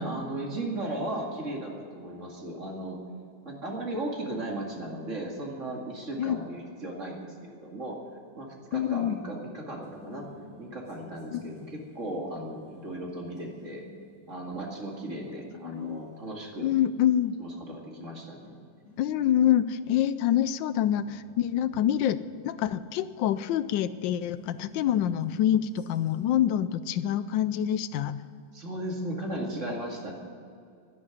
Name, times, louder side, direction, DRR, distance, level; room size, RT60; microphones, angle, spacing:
voice 1, 0.0-3.0 3.4-8.0 8.4-10.3 10.6-13.8 14.3-16.7 17.4-18.6 28.5-30.1, right 1 dB, 40° right, 0 dB, 2.4 m, -36 dB
voice 2, 8.7-9.2 11.3-11.4 15.6-16.0 16.6-17.3 19.0-22.2 22.4-28.2, left 10 dB, 80° left, 14 dB, 1.3 m, -26 dB
discordant clip, 9.0-26.5, left 1 dB, 55° left, 5.4 m, -57 dB
11.0 x 11.0 x 9.0 m, 2.3 s
omnidirectional pair, 2.0 m